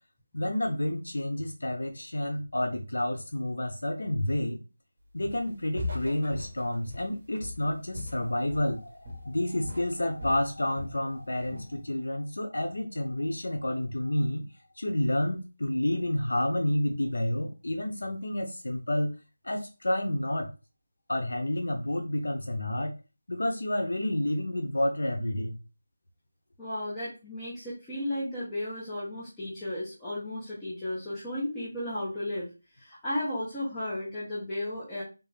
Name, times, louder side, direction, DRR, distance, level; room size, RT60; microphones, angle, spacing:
voice 1, 0.3-4.6 5.1-14.4 14.8-19.1 19.4-20.5 21.1-22.9 23.3-25.6, left 1 dB, 90° left, 4 dB, 0.6 m, -30 dB
Walk footsteps, 5.2-5.5 5.8-8.8 9.0-9.4 9.6-11.0 11.4-11.7, left 2 dB, 30° right, 1.1 m, -39 dB
voice 2, 26.6-32.5 32.8-35.0, left 1 dB, 10° left, -10 dB, 0.7 m, -34 dB
3.4 x 2.5 x 3.2 m, 0.30 s
figure-of-eight pair, 175°, 0 cm